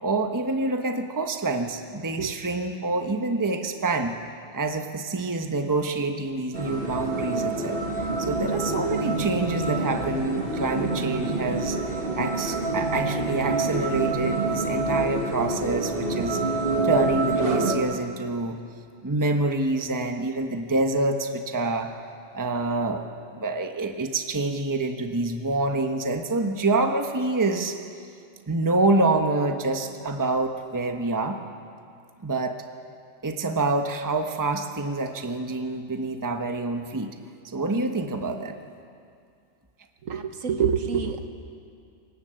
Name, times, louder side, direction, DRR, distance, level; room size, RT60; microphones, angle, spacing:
voice 1, 0.0-4.2 4.5-11.8 12.1-16.4 16.8-18.6 19.0-21.9 22.3-23.0 23.3-27.8 28.5-31.4 32.2-32.6 33.2-37.2 37.5-38.6, right 2 dB, 15° right, 5 dB, 1.0 m, -26 dB
sound 1, 6.5-17.8, right 3 dB, 45° right, 2.1 m, -27 dB
voice 2, 40.0-41.3, right 7 dB, 90° right, 7 dB, 1.6 m, -26 dB
24.0 x 19.5 x 7.6 m, 2.3 s
omnidirectional pair, 1.3 m